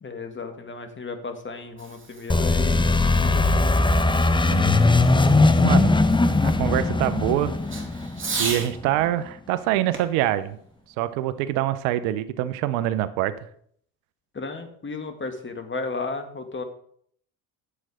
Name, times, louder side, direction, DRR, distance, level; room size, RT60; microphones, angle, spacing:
voice 1, 0.0-2.9 3.2-3.9 14.3-16.6, left 3 dB, 25° left, 7 dB, 2.1 m, -34 dB
Fireworks, 1.6-8.7 9.9-11.6, right 4 dB, 30° right, 2.8 m, -38 dB
sound 1, 2.3-8.9, left 2 dB, 10° left, 0.9 m, -20 dB
voice 2, 6.4-7.5 8.4-10.6 11.0-13.3, right 13 dB, 80° right, 14 dB, 0.9 m, -25 dB
10.0 x 7.7 x 5.0 m, 0.63 s
supercardioid pair, 75°, 42 cm